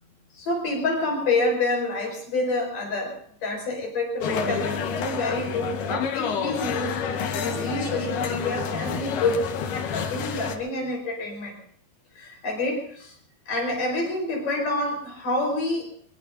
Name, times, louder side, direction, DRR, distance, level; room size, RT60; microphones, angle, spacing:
voice 1, 0.3-7.0 7.4-11.6 12.2-13.1 13.5-15.9, left 2 dB, 60° left, 2 dB, 6.2 m, -28 dB
sound 1, 4.2-10.6, left 6 dB, 85° left, 3.4 m, -29 dB
22.5 x 22.0 x 2.7 m, 0.62 s
omnidirectional pair, 4.4 m